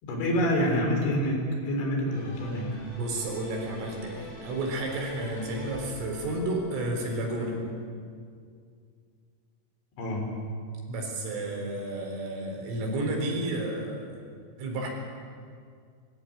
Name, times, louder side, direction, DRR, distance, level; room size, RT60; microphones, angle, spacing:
voice 1, 0.0-2.9 10.0-10.4, equal, 70° left, 2 dB, 6.0 m, -27 dB
sound 1, 2.1-7.5, right 1 dB, 40° left, 8.2 m, -44 dB
voice 2, 2.9-7.6 10.9-14.2 14.6-14.9, right 1 dB, 80° right, 0 dB, 6.5 m, -31 dB
23.0 x 15.5 x 9.5 m, 2.2 s
omnidirectional pair, 5.6 m